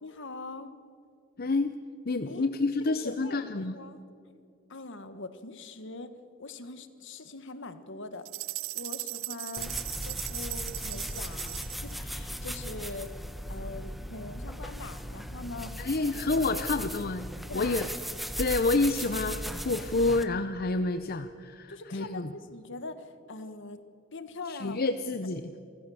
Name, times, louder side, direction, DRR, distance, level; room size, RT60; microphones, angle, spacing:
voice 1, 0.0-0.7 2.3-2.5 2.8-4.0 4.7-6.1 6.4-8.3 8.7-9.7 10.0-13.1 13.5-16.7 17.5-17.8 21.7-23.8 24.1-24.9, left 3 dB, 65° left, 11 dB, 1.4 m, -42 dB
voice 2, 1.4-1.7 2.1-3.8 15.8-17.3 17.5-17.9 18.4-22.3 24.5-25.4, left 3 dB, 50° left, 9 dB, 0.7 m, -28 dB
sound 1, 8.3-11.9, right 19 dB, 75° right, 0.4 m, -38 dB
sound 2, 9.6-20.2, equal, ahead, 1.0 m, -37 dB
27.5 x 15.0 x 7.1 m, 2.4 s
head